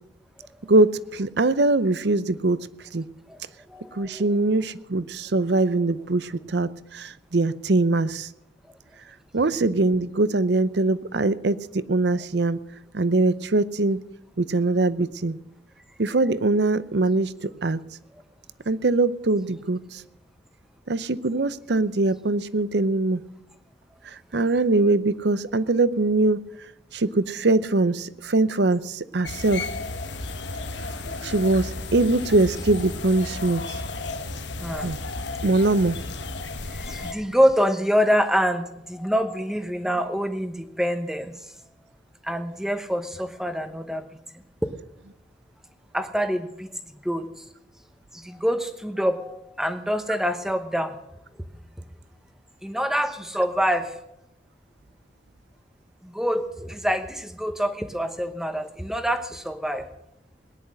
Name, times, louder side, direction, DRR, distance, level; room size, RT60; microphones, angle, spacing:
voice 1, 0.7-2.6 2.9-3.0 4.0-8.3 9.3-12.6 12.9-14.0 14.4-15.4 16.0-17.3 17.6-17.8 18.7-20.0 20.9-23.2 24.3-26.4 26.9-29.6 31.2-33.6 34.8-35.0 35.4-36.0, right 2 dB, 70° right, 16 dB, 0.7 m, -22 dB
voice 2, 3.7-4.3 31.1-31.5 34.6-34.9 36.7-41.3 42.2-44.1 45.9-46.7 47.0-47.3 48.1-51.0 52.6-53.9 56.0-59.9, equal, 5° right, 8 dB, 1.0 m, -26 dB
sound 1, 29.2-37.1, left 3 dB, 80° left, 1.5 m, -33 dB
18.5 x 10.5 x 6.4 m, 0.87 s
head